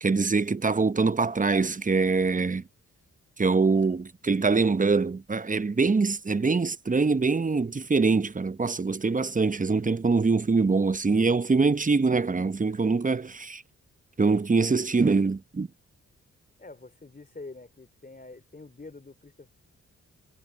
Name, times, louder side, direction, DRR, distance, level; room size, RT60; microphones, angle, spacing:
voice 1, 0.0-2.6 3.4-13.6 14.2-15.7, right 4 dB, 25° right, 0.9 m, -24 dB
voice 2, 16.6-19.5, left 3 dB, 25° left, 2.7 m, -46 dB
supercardioid pair, 40°, 33 cm